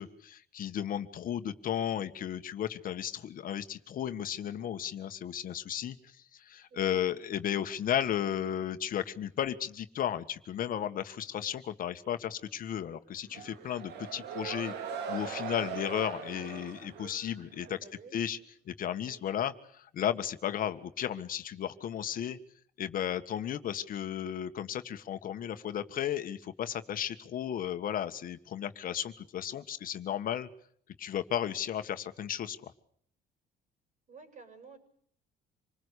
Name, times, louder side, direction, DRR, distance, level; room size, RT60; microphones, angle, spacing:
voice 1, 0.0-14.7 15.1-17.7 18.1-18.4 18.7-22.4 22.8-30.5 31.0-32.7, left 10 dB, 55° left, 8 dB, 1.6 m, -34 dB
voice 2, 6.7-7.0 17.7-18.2 19.0-19.2 34.1-34.8, right 5 dB, 45° right, 8 dB, 7.0 m, -51 dB
sound 1, 13.3-17.8, right 6 dB, 80° right, 2.9 m, -40 dB
26.5 x 20.0 x 8.3 m, 0.63 s
cardioid pair, 110°, 17 cm